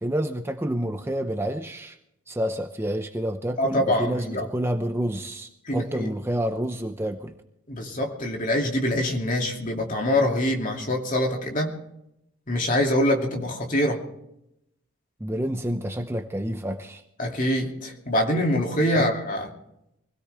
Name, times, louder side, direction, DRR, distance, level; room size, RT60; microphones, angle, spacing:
voice 1, 0.0-2.0 2.3-7.3 15.2-17.0 18.9-19.1, right 1 dB, 10° right, 6 dB, 0.6 m, -29 dB
voice 2, 3.6-4.5 5.7-6.1 7.7-11.7 12.5-14.0 17.2-19.5, left 1 dB, 40° left, 1 dB, 2.6 m, -24 dB
24.0 x 17.0 x 3.4 m, 0.82 s
head